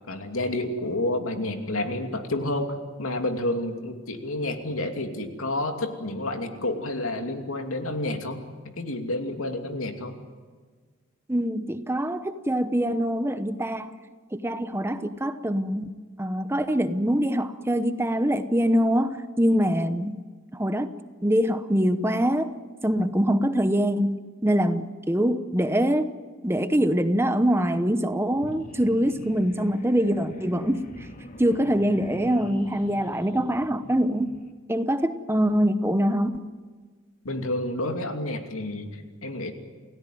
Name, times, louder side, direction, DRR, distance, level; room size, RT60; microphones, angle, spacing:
voice 1, 0.1-8.5 8.8-10.2 37.2-39.5, left 1 dB, 85° left, 5 dB, 2.7 m, -29 dB
voice 2, 11.3-13.9 14.3-20.2 20.5-20.9 21.2-22.5 22.8-26.1 26.4-30.8 31.4-34.3 34.7-36.3, equal, 10° right, 11 dB, 0.9 m, -24 dB
sound 1, 28.3-34.5, left 1 dB, 40° left, 2.0 m, -43 dB
28.5 x 17.0 x 9.4 m, 1.5 s
head